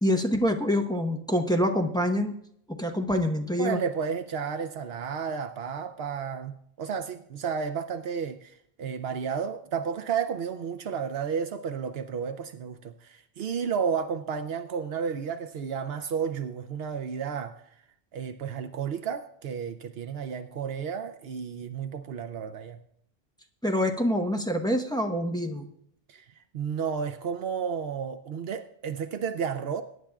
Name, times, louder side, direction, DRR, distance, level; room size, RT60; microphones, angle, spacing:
voice 1, 0.0-2.4 2.7-3.8 23.6-25.7, equal, 5° left, 0.9 m, -26 dB
voice 2, 3.6-17.5 18.1-22.8 26.1-29.8, right 6 dB, 75° right, 0.9 m, -32 dB
21.5 x 10.0 x 2.3 m
omnidirectional pair, 1.0 m